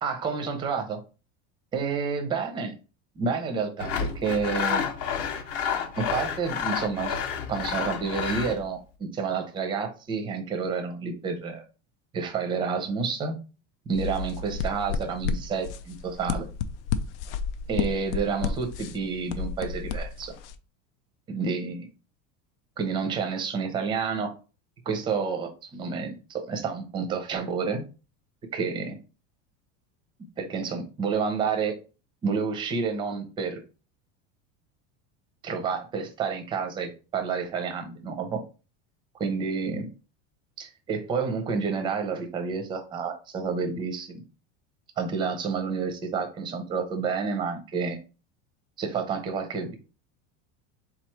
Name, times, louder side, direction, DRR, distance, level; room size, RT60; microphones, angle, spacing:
voice 1, 0.0-1.0 1.7-2.7 3.2-4.8 5.9-7.1 7.5-11.6 12.1-13.4 13.9-16.5 17.7-20.3 21.3-21.9 22.8-24.3 24.9-27.8 28.5-29.0 30.4-31.7 32.2-33.6 35.4-38.4 39.2-39.9 40.6-44.2 45.0-48.0 48.8-49.7, right 5 dB, 15° right, 5 dB, 0.5 m, -29 dB
Sawing, 3.8-8.6, left 7 dB, 45° left, 0.8 m, -30 dB
sound 1, 13.9-20.5, left 6 dB, 80° left, 0.6 m, -32 dB
3.9 x 3.0 x 4.5 m, 0.34 s
cardioid pair, 180°, 35 cm